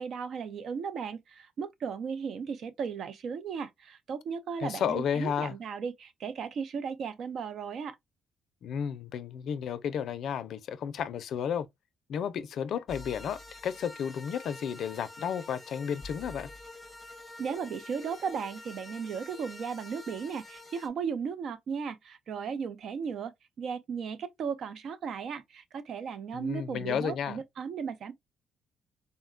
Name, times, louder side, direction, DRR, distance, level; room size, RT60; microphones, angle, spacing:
voice 1, 0.0-8.0 17.4-28.1, right 6 dB, 65° right, 0.5 m, -36 dB
voice 2, 4.6-5.5 8.6-11.7 12.1-16.5 26.3-27.4, left 8 dB, 70° left, 0.4 m, -32 dB
sound 1, 12.9-20.9, left 2 dB, 10° left, 0.7 m, -47 dB
3.8 x 2.1 x 2.3 m
cardioid pair, 90°, 0 cm